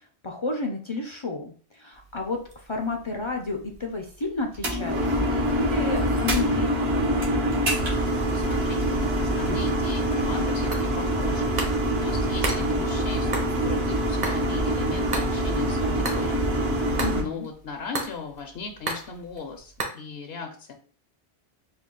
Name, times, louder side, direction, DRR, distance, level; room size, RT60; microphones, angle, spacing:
voice 1, 0.0-7.4 17.0-17.5, left 3 dB, 45° left, 2 dB, 0.4 m, -32 dB
sound 1, 1.9-19.9, right 2 dB, 45° right, 1.0 m, -39 dB
sound 2, 4.5-17.2, right 1 dB, 70° right, 1.4 m, -25 dB
voice 2, 8.3-16.5 17.1-20.7, left 5 dB, 75° left, 4 dB, 0.8 m, -38 dB
4.4 x 2.3 x 3.7 m, 0.42 s
omnidirectional pair, 1.1 m